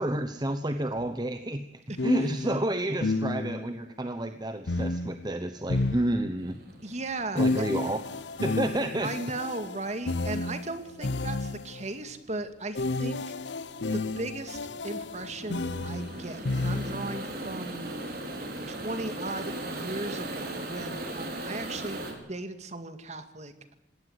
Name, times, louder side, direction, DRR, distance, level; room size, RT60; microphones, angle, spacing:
voice 1, 0.0-1.6 2.0-6.6 7.3-8.0 8.4-9.1, right 1 dB, 25° right, 8 dB, 1.1 m, -30 dB
sound 1, 1.0-1.1 2.0-3.8 4.7-6.6 7.4-11.9 12.7-17.3, left 2 dB, 80° left, 0.8 m, -31 dB
voice 2, 1.9-2.6 6.8-7.8 9.0-13.2 13.9-18.3 18.7-23.7, right 2 dB, 40° right, 9 dB, 2.3 m, -37 dB
sound 2, 6.4-22.1, right 1 dB, 60° right, 5.4 m, -39 dB
20.0 x 17.5 x 8.3 m, 0.86 s
head